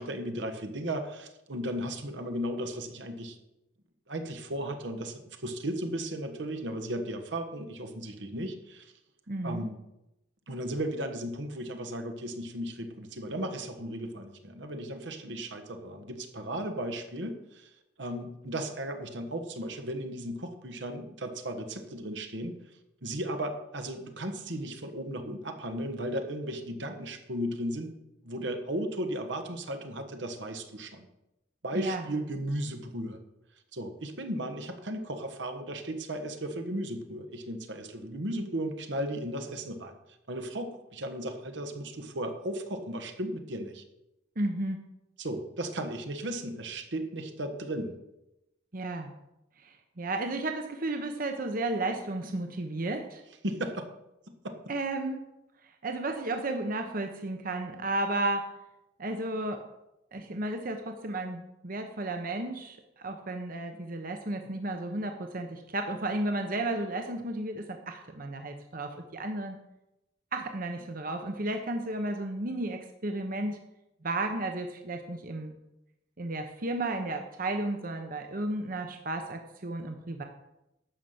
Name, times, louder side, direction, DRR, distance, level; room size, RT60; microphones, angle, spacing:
voice 1, 0.0-3.4 4.1-8.9 9.4-9.8 10.5-17.7 18.0-22.5 23.0-27.9 28.2-31.0 31.6-33.2 33.7-40.0 40.3-43.8 45.2-48.0 53.4-53.9 54.4-54.6, right 1 dB, 80° right, 6 dB, 1.4 m, -35 dB
voice 2, 9.3-9.7 15.3-15.4 31.7-32.0 44.4-44.8 48.7-49.1 49.6-53.2 54.7-55.2 55.8-58.5 59.0-59.6 60.1-69.6 70.3-73.6 74.0-75.6 76.2-80.2, right 2 dB, 50° right, 5 dB, 1.0 m, -33 dB
12.0 x 5.7 x 7.9 m, 0.89 s
head